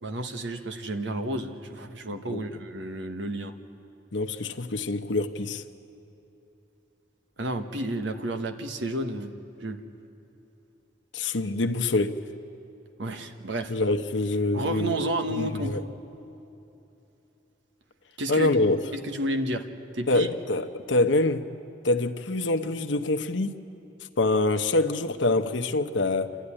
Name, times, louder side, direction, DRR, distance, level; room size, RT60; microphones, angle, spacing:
voice 1, 0.0-3.5 7.4-9.3 9.6-9.8 13.0-13.7 14.5-15.8 18.2-18.5 18.9-19.6 19.9-20.3, right 1 dB, 85° right, 1.4 m, -31 dB
voice 2, 4.1-5.6 11.1-12.2 13.7-14.9 15.4-15.8 18.3-18.8 20.1-21.5 21.8-23.6 24.2-26.4, left 2 dB, 85° left, 0.9 m, -25 dB
28.0 x 13.0 x 9.9 m
head